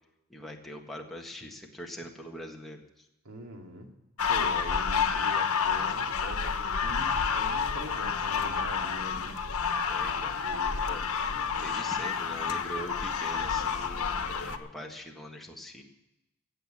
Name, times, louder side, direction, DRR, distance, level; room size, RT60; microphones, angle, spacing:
voice 1, 0.3-3.0 9.9-10.4 10.9-11.0 11.6-15.8, equal, ahead, -1 dB, 1.6 m, -42 dB
voice 2, 3.2-3.9 4.3-9.3 10.4-10.8, equal, 80° right, 2 dB, 2.6 m, -42 dB
sound 1, 4.2-14.6, left 6 dB, 90° left, 1.1 m, -29 dB
15.5 x 8.0 x 8.7 m, 0.92 s
head